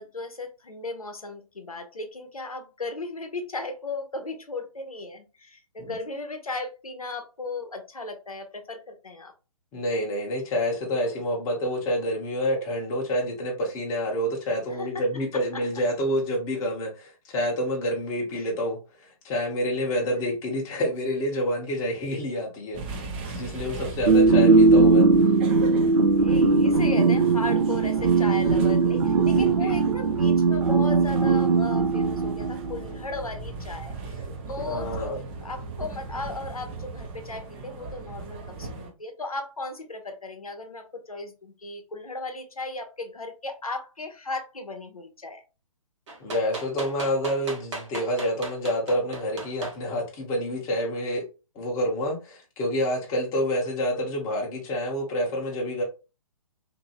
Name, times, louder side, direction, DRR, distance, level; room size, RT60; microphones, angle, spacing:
voice 1, 0.0-9.3 14.7-15.0 15.3-15.6 23.6-24.1 26.2-35.1 35.4-45.4, left 3 dB, 90° left, 0.7 m, -36 dB
voice 2, 9.7-25.4 28.9-29.8 34.1-34.3 34.7-35.2 46.2-51.3 51.5-55.8, equal, 20° left, 0.7 m, -28 dB
sound 1, 22.7-38.9, right 3 dB, 20° right, 0.4 m, -38 dB
sound 2, 24.1-32.8, right 4 dB, 80° right, 0.5 m, -19 dB
sound 3, 46.1-49.8 50.7-50.8, right 3 dB, 55° right, 1.1 m, -36 dB
2.6 x 2.6 x 2.7 m
figure-of-eight pair, 135°, 18 cm